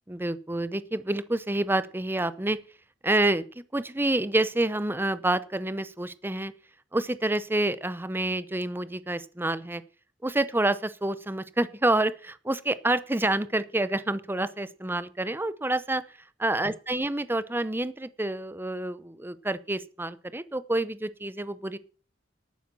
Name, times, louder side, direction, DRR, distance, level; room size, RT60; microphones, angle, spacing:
voice 1, 0.1-2.6 3.0-3.4 3.7-6.5 6.9-9.8 10.2-16.0 16.4-21.8, right 1 dB, 10° right, 16 dB, 0.7 m, -28 dB
11.5 x 9.3 x 7.1 m, 0.37 s
head